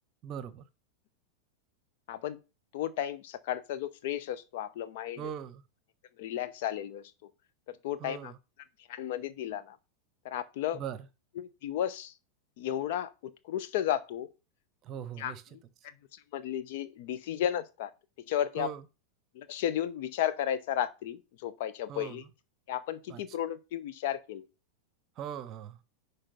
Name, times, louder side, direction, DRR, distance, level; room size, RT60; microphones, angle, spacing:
voice 1, 0.2-0.6 5.2-5.6 8.0-8.4 10.7-11.0 14.8-15.4 18.6-18.8 21.9-22.2 23.1-23.2 25.2-25.8, right 9 dB, 35° right, 0.8 m, -40 dB
voice 2, 2.1-2.4 2.7-5.3 6.2-7.3 7.7-8.3 8.9-9.8 10.2-10.8 11.4-12.1 12.6-14.3 15.2-15.3 16.1-17.9 18.2-18.7 19.3-22.2 22.7-24.4, left 11 dB, 50° left, 0.8 m, -34 dB
9.9 x 3.4 x 5.8 m
figure-of-eight pair, 90°, 0 cm